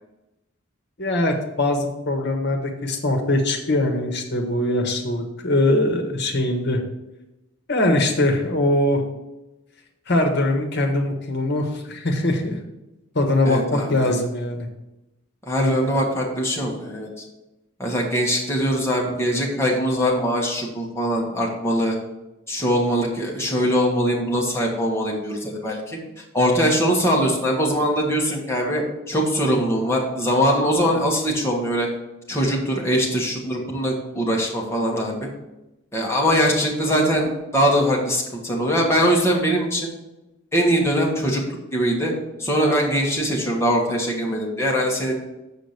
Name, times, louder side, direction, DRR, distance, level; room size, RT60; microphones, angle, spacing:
voice 1, 1.0-6.8 7.7-9.0 10.1-12.6 13.1-14.7 15.6-16.0, left 1 dB, 55° left, 3 dB, 1.4 m, -22 dB
voice 2, 13.4-14.1 15.4-17.2 17.8-22.0 22.5-26.0 26.3-31.9 32.3-35.3 35.9-39.9 40.5-41.4 41.7-42.1 42.4-45.1, equal, 10° left, -2 dB, 1.6 m, -22 dB
7.3 x 5.0 x 6.7 m, 0.96 s
head